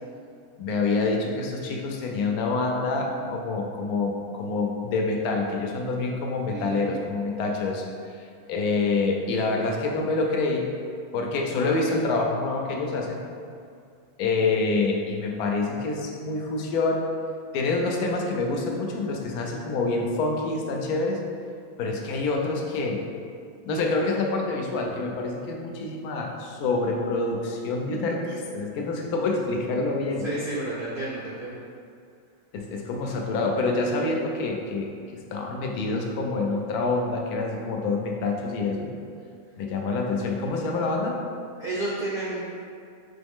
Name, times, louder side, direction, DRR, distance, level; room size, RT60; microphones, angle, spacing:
voice 1, 0.6-10.7 11.1-13.2 14.2-17.1 17.5-21.2 21.8-23.0 23.6-30.3 32.5-38.9 39.5-41.2, left 3 dB, 80° left, 1 dB, 1.1 m, -27 dB
voice 2, 6.5-7.0 11.6-11.7 30.2-31.5 41.6-42.4, right 2 dB, 60° right, -7 dB, 0.5 m, -31 dB
3.9 x 3.0 x 3.5 m, 2.3 s
omnidirectional pair, 1.6 m